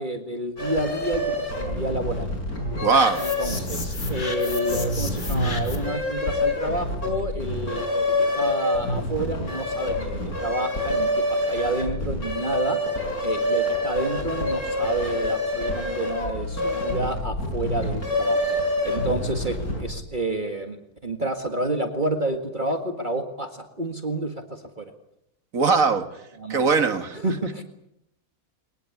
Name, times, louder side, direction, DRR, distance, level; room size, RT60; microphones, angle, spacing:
voice 1, 0.0-2.3 3.2-18.4 18.8-24.9 25.7-25.8 26.4-26.6 27.1-27.6, right 2 dB, 35° right, 5 dB, 2.0 m, -29 dB
sound 1, 0.6-20.0, left 1 dB, 85° left, 6.6 m, -27 dB
voice 2, 2.8-3.3 25.5-26.1 26.5-27.2, right 4 dB, 65° right, 9 dB, 2.1 m, -20 dB
sound 2, 2.9-6.0, left 3 dB, 50° left, 3.1 m, -35 dB
22.5 x 20.5 x 9.6 m, 0.79 s
omnidirectional pair, 1.5 m